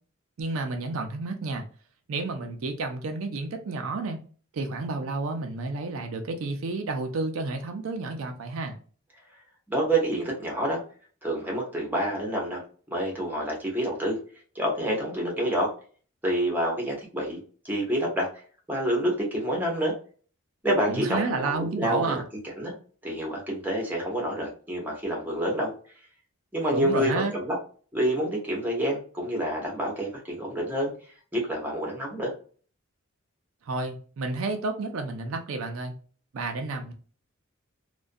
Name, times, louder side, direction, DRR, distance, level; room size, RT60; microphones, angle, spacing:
voice 1, 0.4-1.6 2.1-4.2 4.5-8.7 20.9-22.2 26.7-27.3 33.7-35.9 36.3-36.9, right 3 dB, 70° right, 5 dB, 0.4 m, -31 dB
voice 2, 9.7-10.8 11.2-12.6 12.9-14.2 14.5-15.7 16.2-18.3 18.7-19.9 20.6-22.2 22.6-22.7 23.0-25.7 26.5-27.6 27.9-30.9 31.3-32.3, right 1 dB, 10° right, -1 dB, 0.7 m, -28 dB
2.4 x 2.2 x 2.5 m, 0.42 s
head